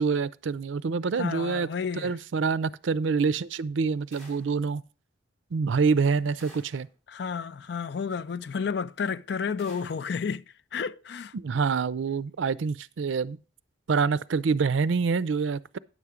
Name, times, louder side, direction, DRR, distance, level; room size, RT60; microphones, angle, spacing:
voice 1, 0.0-1.7 1.9-4.8 5.5-6.9 11.3-13.4 13.9-15.8, right 5 dB, 80° right, 0.5 m, -26 dB
voice 2, 1.2-2.2 7.1-10.4 10.7-11.3, left 6 dB, 60° left, 0.4 m, -31 dB
sound 1, 4.1-4.6 6.4-6.9 9.6-10.1, right 1 dB, 5° left, 3.5 m, -52 dB
9.9 x 6.9 x 4.9 m
head